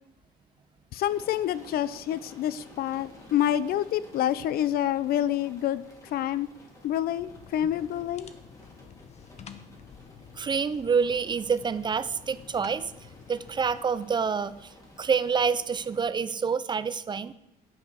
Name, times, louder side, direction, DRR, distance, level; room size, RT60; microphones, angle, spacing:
voice 1, 0.9-6.5 6.8-8.3, left 11 dB, 65° left, 16 dB, 0.5 m, -27 dB
sound 1, 1.1-16.0, left 1 dB, 20° left, 2.6 m, -53 dB
sound 2, 7.2-13.8, left 7 dB, 40° left, 0.8 m, -50 dB
voice 2, 10.4-12.9 13.3-14.7 15.0-17.3, right 6 dB, 25° right, 15 dB, 0.4 m, -27 dB
9.4 x 5.3 x 6.2 m, 0.83 s
cardioid pair, 110°, 17 cm